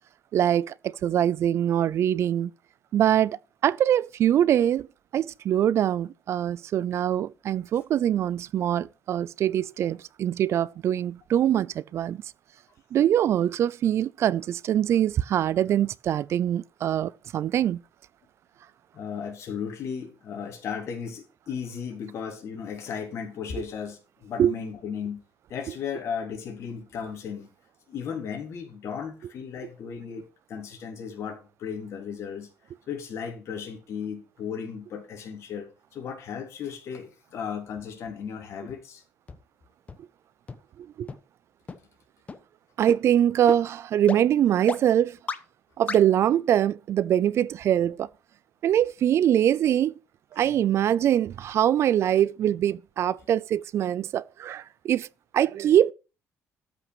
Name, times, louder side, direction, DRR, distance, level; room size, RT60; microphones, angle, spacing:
voice 1, 0.3-2.5 2.9-3.4 3.6-4.9 5.1-12.2 12.9-17.8 24.4-24.5 40.8-41.1 42.8-45.2 45.8-48.1 48.6-50.0 50.3-55.1 55.3-55.9, right 10 dB, 55° right, 0.4 m, -23 dB
voice 2, 18.9-25.2 25.5-27.5 27.9-32.5 32.9-39.0, left 7 dB, 55° left, 3.5 m, -35 dB
sound 1, 39.3-39.4 39.9-40.0 40.5-40.6 41.1-41.2 41.7-41.8 42.3-42.4 42.9-43.0 43.5-43.6 44.1-44.2 44.7-44.8 45.3-45.4 45.9-46.0, left 4 dB, 25° left, 1.1 m, -32 dB
13.0 x 6.0 x 6.0 m
cardioid pair, 135°, 6 cm